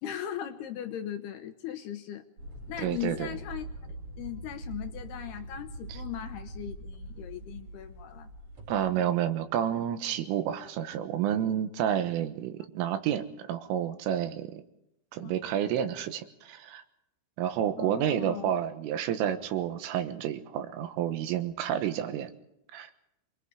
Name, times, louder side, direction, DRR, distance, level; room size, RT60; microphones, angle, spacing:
voice 1, 0.0-2.2 2.7-8.3 15.2-15.3 17.8-18.5, left 11 dB, 75° left, 7 dB, 2.5 m, -38 dB
sound 1, 2.4-8.9, right 1 dB, 30° right, 4.4 m, -43 dB
voice 2, 2.8-3.3 5.9-6.0 8.7-14.6 15.1-16.8 17.4-22.3 22.7-22.9, right 10 dB, 75° right, 9 dB, 3.7 m, -30 dB
27.0 x 21.0 x 4.9 m, 0.82 s
omnidirectional pair, 6.0 m